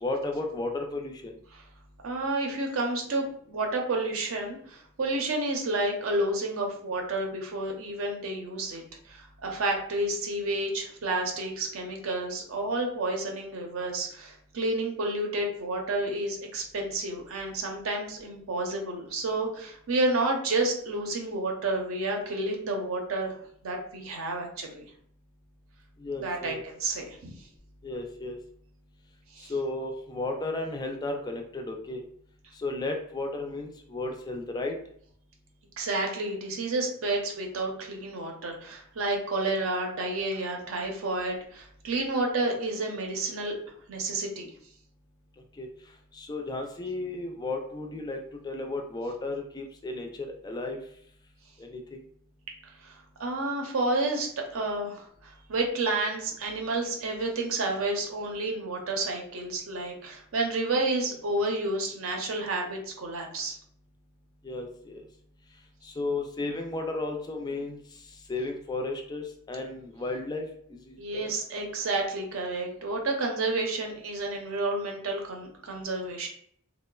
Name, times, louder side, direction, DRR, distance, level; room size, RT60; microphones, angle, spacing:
voice 1, 0.0-1.1 26.0-26.6 27.8-28.4 29.5-32.0 32.6-34.7 45.6-45.7 46.1-50.1 50.4-50.8 51.6-52.0 64.4-65.0 65.8-67.8 68.3-71.0 71.2-71.3, left 2 dB, 20° left, 3 dB, 0.3 m, -33 dB
voice 2, 2.0-23.3 23.6-24.8 26.2-27.2 29.3-29.5 35.8-43.6 43.9-44.5 52.8-63.6 71.0-76.3, right 2 dB, 70° right, 2 dB, 0.6 m, -30 dB
2.9 x 2.1 x 2.3 m, 0.64 s
head